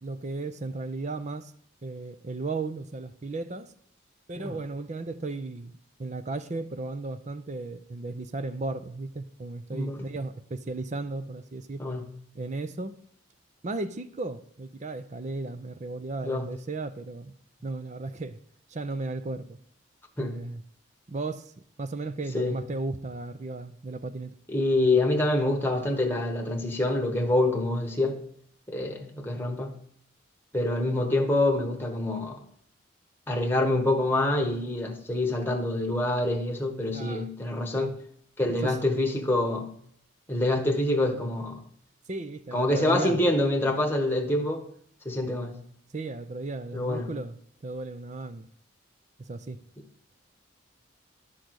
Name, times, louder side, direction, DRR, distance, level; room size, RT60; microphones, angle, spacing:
voice 1, 0.0-1.5 1.8-3.7 4.3-11.8 12.3-13.0 13.6-17.3 17.6-18.4 18.7-19.6 20.2-20.6 21.1-21.5 21.8-24.4 36.9-37.3 37.8-38.0 38.6-38.8 42.1-43.2 45.9-47.4 47.6-48.5 49.2-49.6, right 3 dB, 35° right, 0.5 m, -35 dB
voice 2, 9.7-10.1 11.8-12.0 16.2-16.5 20.2-20.4 22.3-22.6 24.5-28.2 28.7-29.7 30.5-32.4 33.3-38.0 38.4-39.7 40.3-41.6 42.5-44.6 45.0-45.6 46.7-47.1, left 1 dB, 10° left, 1.1 m, -26 dB
11.5 x 3.9 x 6.3 m
head